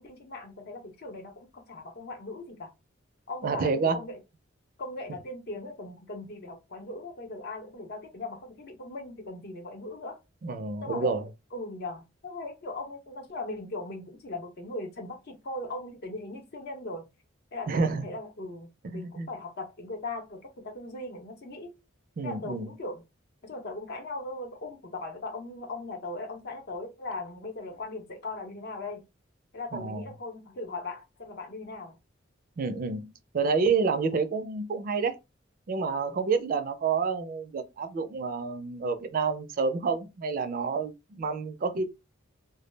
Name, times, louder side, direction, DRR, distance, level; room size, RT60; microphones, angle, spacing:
voice 1, 0.0-2.7 3.3-4.2 4.8-10.2 10.8-11.1 11.5-17.1 17.5-21.7 22.2-23.0 23.4-29.0 29.5-32.0, left 2 dB, 55° left, 0.7 m, -39 dB
voice 2, 3.4-4.0 10.4-11.3 17.7-18.1 18.9-19.3 22.2-22.7 29.7-30.1 32.6-35.2 35.7-41.9, right 4 dB, 45° right, 0.4 m, -29 dB
2.2 x 2.0 x 3.2 m
head